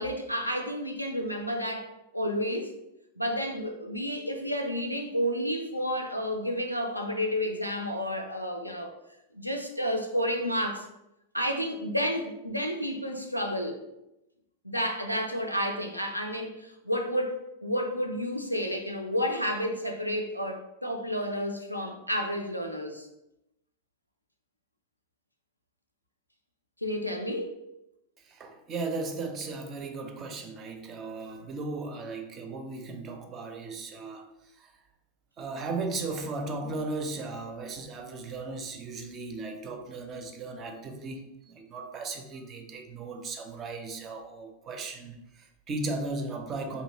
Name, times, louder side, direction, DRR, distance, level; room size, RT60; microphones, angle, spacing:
voice 1, 0.0-2.7 3.2-8.9 9.3-10.9 11.3-13.8 14.6-23.1 26.8-27.6, equal, 90° left, 3 dB, 0.3 m, -31 dB
voice 2, 28.2-34.3 34.5-34.7 35.4-46.8, right 3 dB, 30° right, 4 dB, 0.4 m, -36 dB
2.6 x 2.2 x 2.8 m, 0.88 s
figure-of-eight pair, 90°, 0 cm